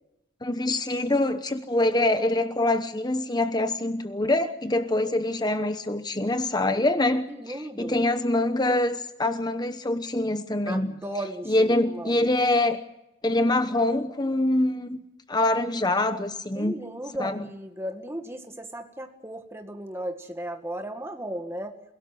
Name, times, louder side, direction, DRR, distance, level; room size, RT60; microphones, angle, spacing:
voice 1, 0.4-7.3 7.8-10.9 11.5-12.8 13.2-15.0 15.3-16.7 17.2-17.4, left 1 dB, 20° left, 9 dB, 1.0 m, -24 dB
voice 2, 7.3-8.1 10.7-12.3 16.5-21.7, right 1 dB, 15° right, 5 dB, 1.8 m, -36 dB
28.5 x 17.0 x 7.7 m, 0.88 s
head